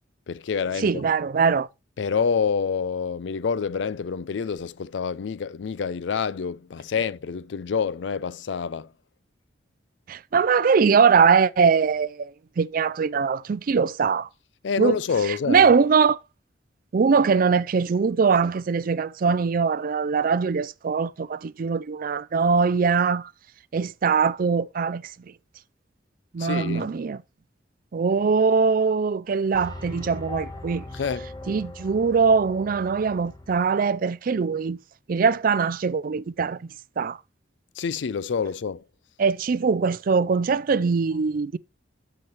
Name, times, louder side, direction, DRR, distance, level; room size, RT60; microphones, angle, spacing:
voice 1, 0.3-1.1 2.0-8.9 14.6-15.7 26.4-26.9 30.9-31.3 37.8-38.8, left 6 dB, 70° left, 0.4 m, -27 dB
voice 2, 0.8-1.7 10.1-14.3 14.8-15.0 15.3-16.2 16.9-23.3 23.7-25.1 26.3-27.2 27.9-30.8 31.5-34.8 35.1-36.7 37.0-37.2 39.2-41.6, right 5 dB, 50° right, 0.4 m, -22 dB
sound 1, 29.5-33.8, left 2 dB, 25° left, 1.4 m, -39 dB
9.6 x 7.1 x 3.0 m
head